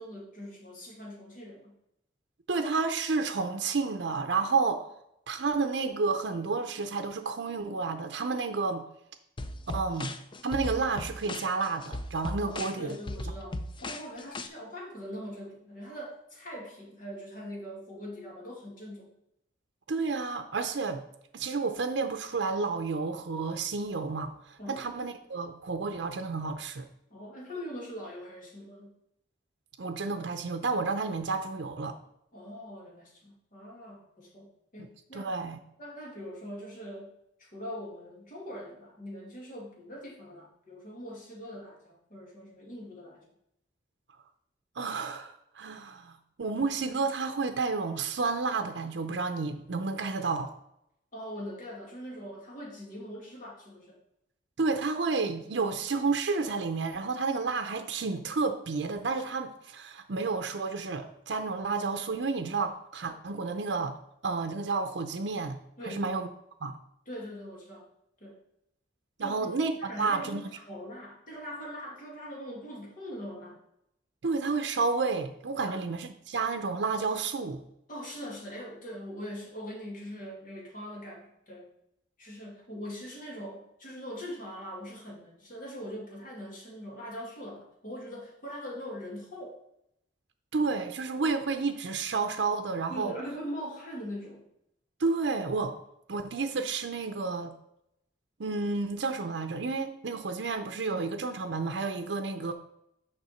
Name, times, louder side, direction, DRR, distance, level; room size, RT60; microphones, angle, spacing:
voice 1, 0.0-1.7 12.4-19.1 24.6-24.8 27.1-28.9 32.3-35.3 35.8-37.1 37.4-43.3 51.1-54.0 65.8-66.2 67.1-67.9 68.2-68.4 69.2-69.5 69.8-73.6 75.6-75.8 77.9-81.7 82.2-89.6 92.9-94.4, equal, 50° left, -3 dB, 2.3 m, -42 dB
voice 2, 2.5-4.9 5.3-8.8 9.7-10.1 10.4-13.0 19.9-21.0 21.3-26.9 29.8-32.0 35.1-35.6 44.8-50.5 54.6-64.0 64.2-65.6 65.9-66.3 66.6-66.8 69.2-70.5 74.2-77.6 90.5-93.1 95.0-95.8 96.1-97.5 98.4-102.5, right 4 dB, 75° right, 6 dB, 0.6 m, -31 dB
sound 1, 9.4-14.5, left 1 dB, 30° left, 0.4 m, -37 dB
6.7 x 5.5 x 4.4 m, 0.78 s
head